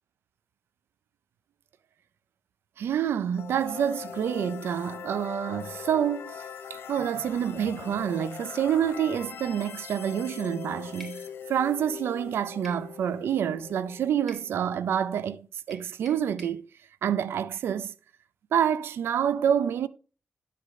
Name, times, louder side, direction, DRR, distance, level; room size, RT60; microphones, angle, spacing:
voice 1, 2.8-16.7 17.0-17.9 18.5-19.9, right 9 dB, 90° right, 0.5 m, -28 dB
sound 1, 3.3-15.2, left 8 dB, 85° left, 1.0 m, -42 dB
sound 2, 11.0-11.2 12.6-12.9 14.3-14.5 15.7-16.6, right 1 dB, ahead, 3.7 m, -48 dB
11.0 x 5.0 x 4.1 m
cardioid pair, 55°, 4 cm